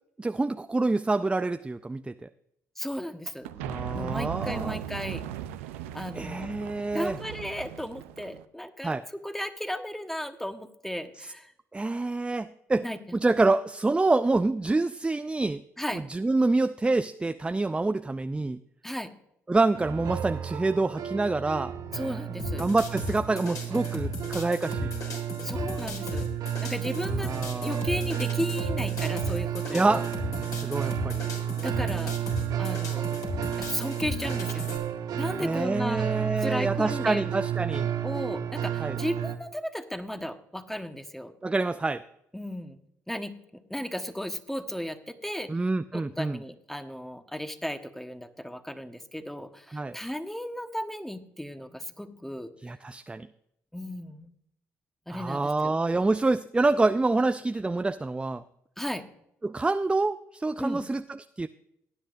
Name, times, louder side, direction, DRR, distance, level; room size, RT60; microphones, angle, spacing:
voice 1, 0.2-2.3 3.6-4.8 6.1-7.2 8.8-9.0 11.7-12.9 13.1-15.6 15.9-18.6 19.5-21.7 22.6-24.9 27.2-27.9 29.7-30.0 30.4-31.3 35.4-37.9 38.8-39.0 41.4-42.0 45.5-46.4 49.7-50.0 52.6-53.3 55.1-58.4 59.4-61.5, right 3 dB, 15° right, 11 dB, 0.4 m, -27 dB
voice 2, 2.8-3.5 3.9-5.2 5.9-6.5 6.9-8.9 9.2-11.5 12.8-13.0 15.8-16.0 18.8-19.1 21.9-22.7 25.4-26.3 26.6-27.3 27.6-30.0 31.6-32.1 32.6-33.2 33.6-34.8 35.2-36.1 36.4-37.3 38.0-41.3 42.3-42.8 43.1-45.5 45.9-52.5 53.7-54.3 55.1-55.8 58.8-59.0 60.6-60.8, equal, 5° left, 8 dB, 1.3 m, -35 dB
sound 1, 3.4-8.4, right 11 dB, 90° right, 0.5 m, -38 dB
sound 2, 19.7-39.4, right 10 dB, 65° right, 1.1 m, -32 dB
sound 3, 22.4-34.8, left 2 dB, 55° left, 3.8 m, -36 dB
17.5 x 10.0 x 2.6 m, 0.77 s
hypercardioid pair, 55°, 7 cm